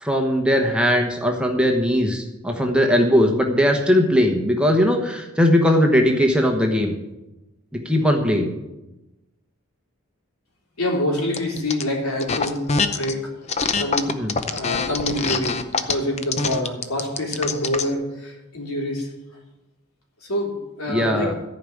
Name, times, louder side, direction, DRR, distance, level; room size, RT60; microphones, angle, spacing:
voice 1, 0.0-6.9 7.8-8.5 14.1-14.3 20.9-21.3, equal, 5° right, 2 dB, 1.1 m, -19 dB
voice 2, 10.8-12.6 12.9-13.2 13.7-14.1 14.5-19.1 20.2-21.3, left 1 dB, 80° left, -1 dB, 3.5 m, -26 dB
sound 1, 11.3-11.8 12.2-13.1 13.5-17.9, left 4 dB, 30° left, 0.6 m, -24 dB
14.0 x 5.2 x 8.5 m, 0.99 s
head